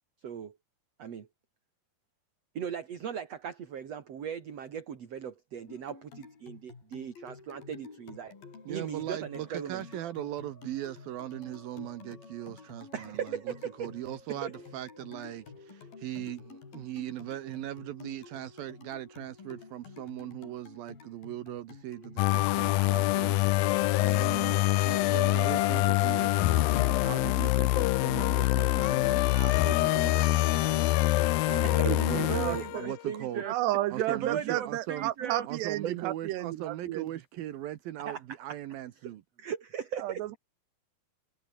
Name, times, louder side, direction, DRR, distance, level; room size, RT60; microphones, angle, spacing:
voice 1, 0.2-0.6 1.0-1.3 2.5-8.3 8.7-9.8 12.9-13.9 14.3-14.5 31.6-33.5 34.1-35.5 38.0-38.2 39.0-39.1 39.4-40.2, right 8 dB, 45° right, 2.9 m, -38 dB
sound 1, 5.7-23.5, left 5 dB, 55° left, 7.1 m, -51 dB
sound 2, 6.8-21.3, left 3 dB, 30° left, 7.0 m, -58 dB
voice 2, 8.7-23.4 24.0-30.8 31.4-33.4 33.9-35.1 35.5-39.2, right 13 dB, 70° right, 2.6 m, -39 dB
sound 3, 22.2-33.0, left 18 dB, 80° left, 2.3 m, -25 dB
voice 3, 31.7-32.9 33.4-37.1 40.0-40.4, right 15 dB, 90° right, 3.2 m, -32 dB
omnidirectional pair, 4.8 m